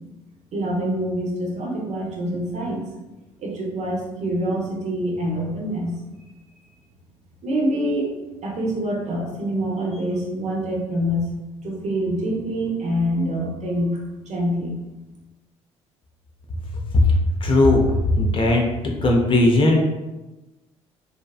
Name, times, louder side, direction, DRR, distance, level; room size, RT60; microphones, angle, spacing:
voice 1, 0.5-2.9 3.4-6.0 7.4-8.1 8.4-11.3 11.6-14.0 14.3-14.8, equal, 50° right, -2 dB, 0.8 m, -25 dB
voice 2, 17.4-17.8 18.2-18.6 19.0-19.8, left 2 dB, 35° left, 0 dB, 0.6 m, -17 dB
2.7 x 2.3 x 2.3 m, 1.1 s
hypercardioid pair, 60°, 15 cm